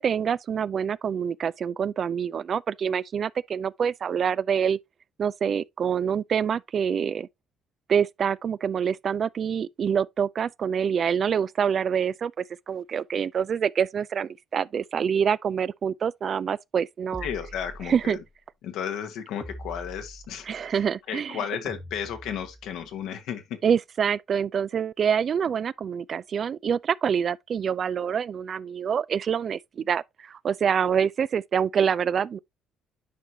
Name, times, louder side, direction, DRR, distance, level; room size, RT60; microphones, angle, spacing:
voice 1, 0.0-4.8 5.2-7.3 7.9-17.3 17.9-18.2 20.5-21.4 23.6-32.4, right 7 dB, 50° right, 0.3 m, -26 dB
sound 1, 17.1-18.2 19.4-20.7 21.6-22.9, right 1 dB, 5° right, 1.0 m, -43 dB
voice 2, 17.2-18.2 18.6-20.8 21.1-23.6, left 8 dB, 70° left, 1.3 m, -34 dB
10.0 x 4.7 x 2.8 m
hypercardioid pair, 55°, 0 cm